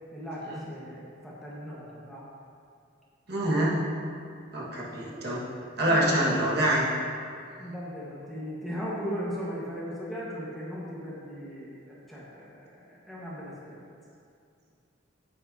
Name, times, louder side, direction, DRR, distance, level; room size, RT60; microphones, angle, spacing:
voice 1, 0.1-2.3 5.9-6.4 7.6-13.8, equal, ahead, -8 dB, 1.3 m, -37 dB
voice 2, 3.3-3.8 4.5-5.4 5.8-6.8, right 1 dB, 50° right, -6 dB, 1.7 m, -26 dB
9.5 x 8.7 x 2.8 m, 2.4 s
head